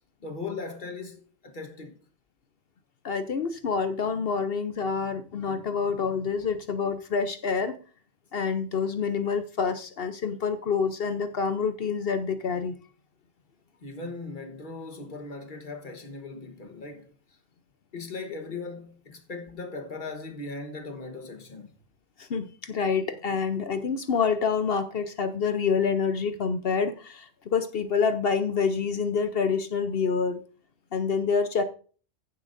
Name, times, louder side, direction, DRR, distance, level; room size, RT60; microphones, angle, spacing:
voice 1, 0.2-2.0 13.8-17.1 17.9-21.8, left 3 dB, 45° left, 1.4 m, -38 dB
voice 2, 3.0-7.8 8.3-12.7 22.2-30.4 30.9-31.6, left 5 dB, 60° left, 0.9 m, -27 dB
15.5 x 7.2 x 2.6 m
omnidirectional pair, 1.2 m